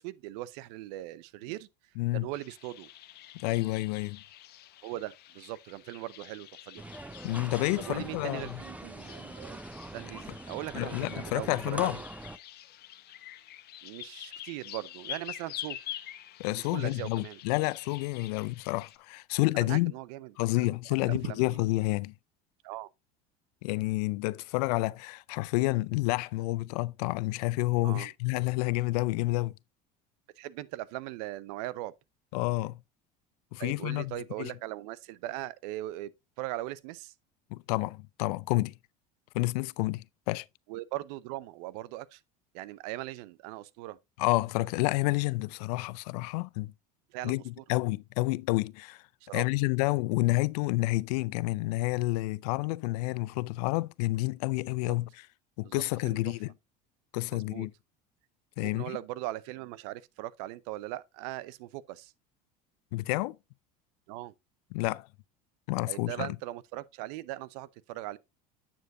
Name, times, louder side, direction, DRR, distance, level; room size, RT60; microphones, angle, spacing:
voice 1, 0.0-1.7 2.1-2.9 4.8-6.9 7.8-9.6 9.9-12.0 13.8-15.8 16.6-17.4 19.5-20.3 20.6-20.8 21.0-21.4 22.6-22.9 27.8-28.1 30.4-31.9 33.6-36.1 36.4-37.1 40.7-42.2 42.5-44.0 47.1-47.4 49.2-49.5 54.9-55.0 55.6-56.2 57.3-57.7 58.6-62.1 64.1-64.3 65.9-68.2, right 16 dB, 70° right, 0.6 m, -39 dB
voice 2, 2.0-2.3 3.3-4.2 7.2-8.6 10.7-12.0 16.4-19.9 20.4-22.1 23.6-29.5 32.3-32.8 33.5-34.5 37.5-38.7 39.3-40.5 44.2-46.7 47.2-49.0 49.3-55.3 55.6-56.5 57.1-57.7 58.6-59.0 62.9-63.4 64.7-65.1 65.7-66.3, left 21 dB, 75° left, 0.4 m, -29 dB
sound 1, 2.3-19.0, left 13 dB, 50° left, 1.0 m, -47 dB
sound 2, 6.8-12.4, right 2 dB, 5° right, 0.6 m, -42 dB
9.1 x 7.2 x 2.6 m
hypercardioid pair, 85°, 21 cm